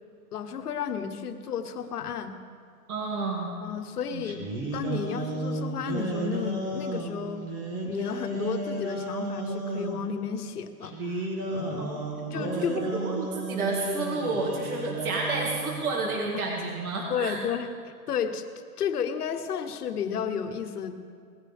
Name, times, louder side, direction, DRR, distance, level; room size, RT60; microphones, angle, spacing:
voice 1, 0.3-2.3 3.6-4.4 4.7-7.4 7.8-11.9 12.3-12.9 17.1-17.7 18.1-18.4 18.8-20.9, left 7 dB, 75° left, 7 dB, 1.4 m, -32 dB
voice 2, 2.9-3.6 4.1-4.2 11.8-17.4, right 3 dB, 65° right, -2 dB, 2.5 m, -31 dB
sound 1, 4.2-10.0 10.8-15.9, right 2 dB, 20° right, 1.5 m, -33 dB
19.5 x 14.5 x 3.6 m, 2.2 s
hypercardioid pair, 175°, 46 cm